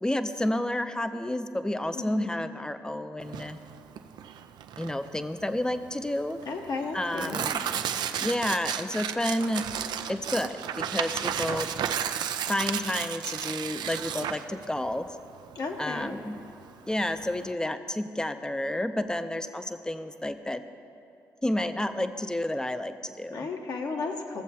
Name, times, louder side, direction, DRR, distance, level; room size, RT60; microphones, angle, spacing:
voice 1, 0.0-3.6 4.8-6.4 6.9-7.6 8.2-9.7 10.1-11.7 12.5-15.1 15.8-16.4 16.9-20.6 21.4-23.5, left 1 dB, 10° left, 9 dB, 0.5 m, -30 dB
voice 2, 2.0-2.3 6.5-7.5 15.5-16.2 23.3-24.4, left 4 dB, 60° left, 2 dB, 1.0 m, -34 dB
Tearing, 3.2-17.5, right 9 dB, 70° right, 0.4 m, -33 dB
16.0 x 7.2 x 2.8 m, 2.7 s
supercardioid pair, 55°, 8 cm